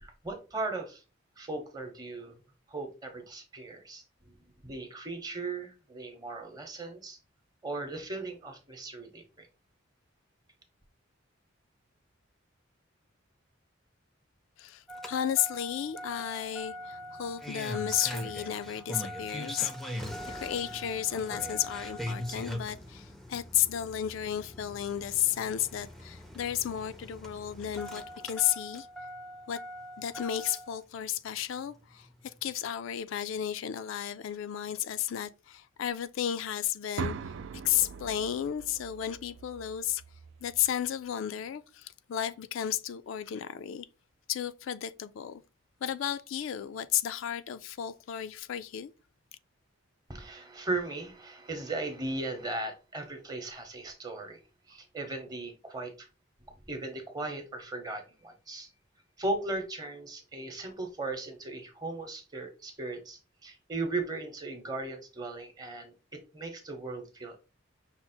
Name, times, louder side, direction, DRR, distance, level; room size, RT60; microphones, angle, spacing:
voice 1, 0.0-1.0 1.4-2.4 2.7-4.3 4.6-7.2 7.6-9.5 50.1-54.4 54.7-56.1 56.7-58.7 59.2-67.3, right 2 dB, 20° right, 0.8 m, -37 dB
voice 2, 14.6-28.9 29.5-29.6 30.0-37.1 37.6-40.0 40.4-43.9 44.3-45.4 45.8-48.9, left 10 dB, 70° left, 0.3 m, -33 dB
Engine starting, 14.9-30.8 32.1-32.2, equal, ahead, 0.5 m, -41 dB
sound 1, 37.0-40.9, right 5 dB, 65° right, 0.3 m, -41 dB
5.8 x 2.0 x 4.3 m
head